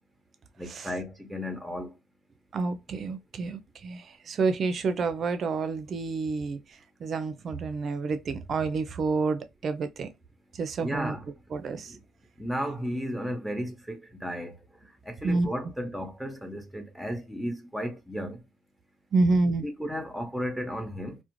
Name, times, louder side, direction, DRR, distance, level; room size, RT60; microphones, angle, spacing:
voice 1, 0.6-2.0 10.8-11.2 11.9-12.0 12.4-18.4 19.6-21.2, equal, ahead, 0.8 m, -34 dB
voice 2, 2.5-10.1 10.5-11.1 11.5-12.0 15.2-15.5 19.1-19.7, right 3 dB, 50° right, 0.5 m, -29 dB
2.4 x 2.1 x 3.0 m
supercardioid pair, 70°, 0 cm